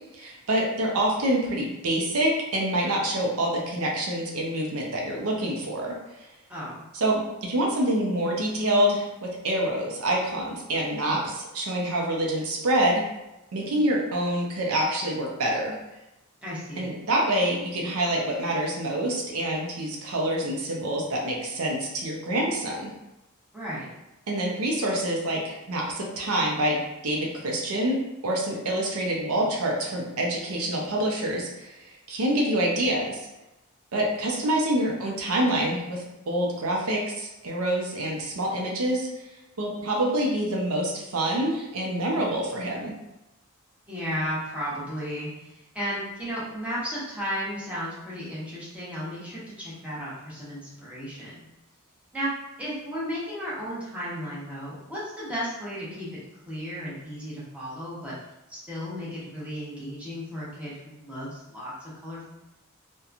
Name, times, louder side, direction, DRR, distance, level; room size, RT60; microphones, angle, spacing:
voice 1, 0.1-6.3 6.9-13.0 13.5-15.8 16.8-22.9 24.3-28.0 28.2-33.3 33.9-39.1 39.6-42.9, right 1 dB, 75° right, -1 dB, 0.5 m, -26 dB
voice 2, 6.5-6.8 16.4-16.9 23.5-23.9 34.7-34.9 43.9-51.4 52.1-52.3 52.6-56.1 56.5-58.1 58.5-61.7 62.0-62.3, equal, 5° right, -9 dB, 0.8 m, -34 dB
2.9 x 2.2 x 2.4 m, 0.93 s
head